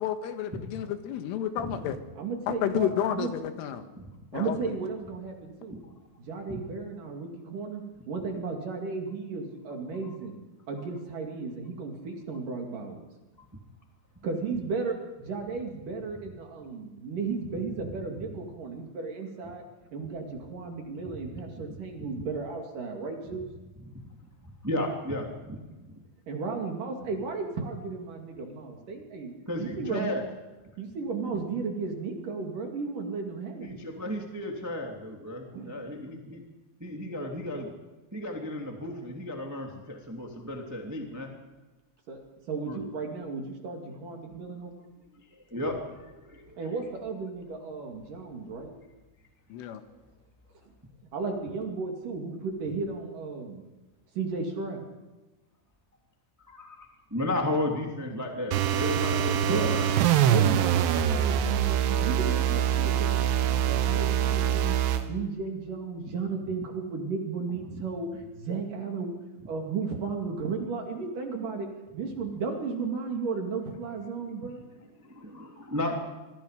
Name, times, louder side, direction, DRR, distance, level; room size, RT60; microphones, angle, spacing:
voice 1, 0.0-2.0 2.5-3.8 4.3-4.6 49.5-49.8, left 10 dB, 85° left, 8 dB, 4.0 m, -30 dB
voice 2, 2.2-3.3 4.3-5.8 6.2-10.4 10.7-13.1 14.2-19.6 19.9-23.5 26.3-29.3 29.6-30.2 30.8-33.7 35.5-35.7 42.1-42.2 42.5-44.9 46.6-48.7 51.1-53.6 54.2-54.8 59.4-59.8 60.3-63.3 63.6-69.2 69.5-74.6, right 4 dB, 50° right, 2 dB, 3.5 m, -34 dB
voice 3, 24.4-25.9 29.4-30.2 33.6-36.4 36.8-37.7 38.1-41.3 42.6-42.8 44.3-44.6 45.2-46.6 56.5-59.9 63.3-64.0 75.0-76.0, left 1 dB, 10° right, 1 dB, 1.2 m, -34 dB
sound 1, 58.5-65.1, right 9 dB, 70° right, 2.9 m, -24 dB
27.0 x 23.0 x 5.2 m, 1.2 s
omnidirectional pair, 5.7 m